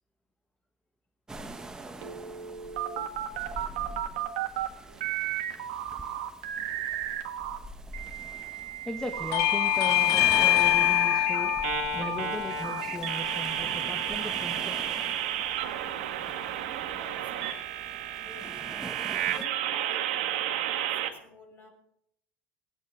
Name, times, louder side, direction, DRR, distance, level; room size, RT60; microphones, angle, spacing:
sound 1, 1.3-19.5, right 2 dB, 10° right, 1.3 m, -44 dB
sound 2, 2.0-4.7 5.0-7.6 7.9-21.1, right 12 dB, 85° right, 2.1 m, -33 dB
voice 1, 8.9-11.5 11.9-15.2, left 1 dB, 10° left, 5 dB, 1.3 m, -38 dB
Bell / Doorbell, 9.3-14.5, left 22 dB, 65° left, 0.4 m, -26 dB
voice 2, 16.8-17.5 18.2-21.7, left 3 dB, 35° left, 3 dB, 6.1 m, -50 dB
18.5 x 9.8 x 6.0 m, 0.74 s
supercardioid pair, 115°, 6 cm